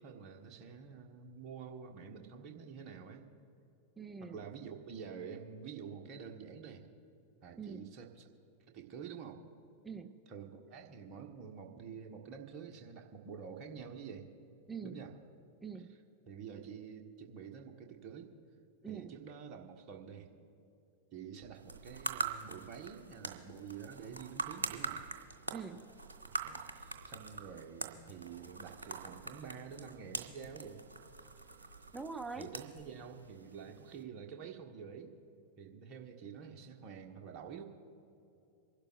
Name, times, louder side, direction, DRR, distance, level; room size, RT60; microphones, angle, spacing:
voice 1, 0.0-3.3 4.2-6.8 7.4-8.3 8.7-9.4 10.3-14.3 14.8-15.2 15.7-15.8 16.3-18.3 18.8-20.3 21.1-25.0 26.3-30.8 32.3-35.1 35.6-37.7, right 6 dB, 35° right, 3 dB, 1.3 m, -48 dB
voice 2, 4.0-4.4 7.6-7.9 9.8-10.1 14.7-15.0 15.6-15.9 18.8-19.1 25.5-25.8 31.9-32.5, right 5 dB, 10° right, 8 dB, 0.6 m, -43 dB
sound 1, 21.5-34.0, right 3 dB, 75° right, 1.0 m, -44 dB
27.5 x 12.0 x 2.5 m, 2.9 s
figure-of-eight pair, 90°, 0 cm